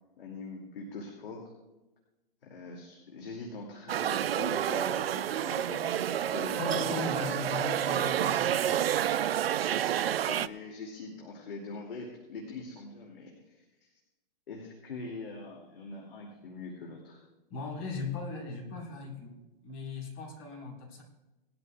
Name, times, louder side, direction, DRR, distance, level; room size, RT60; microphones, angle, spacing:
voice 1, 0.2-1.4 2.4-7.0 10.1-13.9 14.5-17.2, left 3 dB, 80° left, 0 dB, 2.7 m, -43 dB
sound 1, 3.9-10.5, right 10 dB, 85° right, 0.5 m, -29 dB
voice 2, 6.6-9.3 9.7-9.9 17.5-21.0, left 3 dB, 40° left, -1 dB, 4.7 m, -38 dB
19.5 x 12.5 x 2.4 m, 1.1 s
hypercardioid pair, 145°, 29 cm